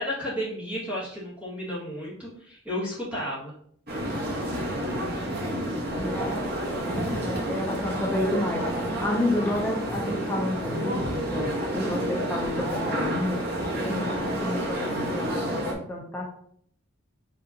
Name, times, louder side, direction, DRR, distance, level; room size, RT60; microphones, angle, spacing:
voice 1, 0.0-3.5, equal, 5° right, -8 dB, 1.8 m, -32 dB
sound 1, 3.9-15.7, equal, 50° right, 1.2 m, -29 dB
voice 2, 6.0-13.4 13.8-15.6 15.9-16.3, left 1 dB, 10° left, -2 dB, 0.6 m, -31 dB
5.1 x 3.7 x 2.8 m, 0.63 s
head